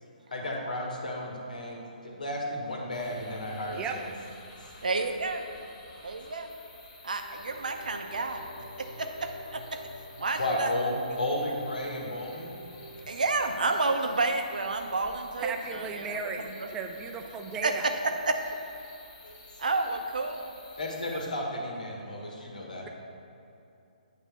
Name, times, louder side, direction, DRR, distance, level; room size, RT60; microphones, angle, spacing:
voice 1, 0.3-1.8 2.0-4.1 10.4-12.5 19.2-19.4 20.8-22.8, left 1 dB, 65° left, -1 dB, 1.6 m, -33 dB
sound 1, 2.9-21.3, left 2 dB, 25° left, 1.1 m, -52 dB
sound 2, 4.7-6.4 7.1-13.1, equal, 80° left, 1.4 m, -50 dB
voice 2, 4.8-5.4 6.0-6.5 7.0-8.4 8.8-9.8 10.2-10.7 13.1-16.7 17.6-18.4 19.6-20.5, right 3 dB, 65° right, 5 dB, 0.8 m, -30 dB
voice 3, 15.4-17.9, right 5 dB, 15° right, 4 dB, 0.5 m, -36 dB
9.2 x 3.5 x 6.6 m, 2.6 s
figure-of-eight pair, 135°, 5 cm